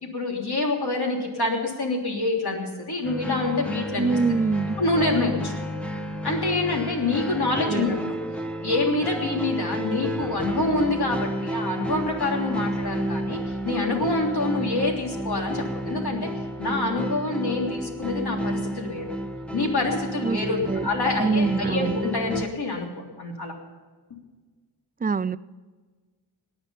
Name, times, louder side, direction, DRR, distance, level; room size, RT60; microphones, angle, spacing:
voice 1, 0.0-4.1 4.8-5.5 6.2-8.2 8.6-16.3 16.6-19.1 19.5-23.5, left 2 dB, 55° left, 0 dB, 3.4 m, -26 dB
sound 1, 3.0-22.4, right 1 dB, 5° left, 1.2 m, -31 dB
voice 2, 4.0-4.8 7.7-7.9 20.2-20.9 21.2-22.0 25.0-25.4, right 4 dB, 20° right, 17 dB, 0.3 m, -25 dB
18.0 x 10.0 x 5.7 m, 1.4 s
wide cardioid pair, 95°, 46 cm